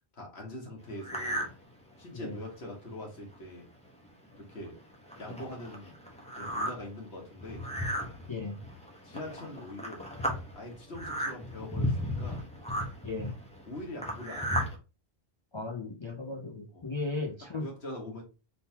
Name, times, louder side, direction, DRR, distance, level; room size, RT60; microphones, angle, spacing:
voice 1, 0.1-1.5 2.0-3.7 4.3-4.8 5.2-5.9 6.4-7.7 9.0-10.1 10.6-12.4 13.7-14.7 16.7-16.9 17.4-18.2, left 1 dB, 75° left, 1.7 m, -43 dB
sound 1, 1.0-1.5 2.0-2.1 2.7-2.8 3.1-3.4 4.0-4.1 4.5-14.8, equal, 5° left, 1.0 m, -35 dB
voice 2, 8.3-8.6 13.0-13.3 15.5-17.7, left 3 dB, 50° left, 0.3 m, -36 dB
3.9 x 3.6 x 2.8 m
omnidirectional pair, 1.1 m